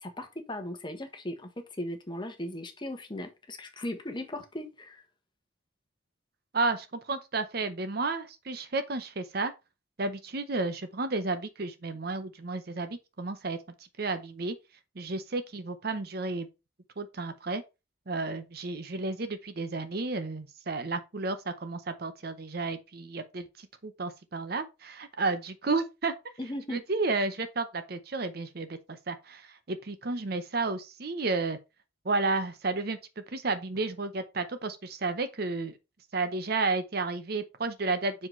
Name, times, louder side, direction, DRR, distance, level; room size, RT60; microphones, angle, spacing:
voice 1, 0.0-1.5 1.8-5.0 26.4-26.8, left 1 dB, 25° left, 1.2 m, -37 dB
voice 2, 6.5-9.5 10.0-13.6 14.0-14.6 15.0-16.5 17.0-17.6 18.1-26.1 26.7-28.8 29.1-31.6 32.0-33.0 33.3-35.8 36.1-38.1, right 3 dB, 50° right, 0.7 m, -32 dB
5.9 x 4.9 x 4.4 m
head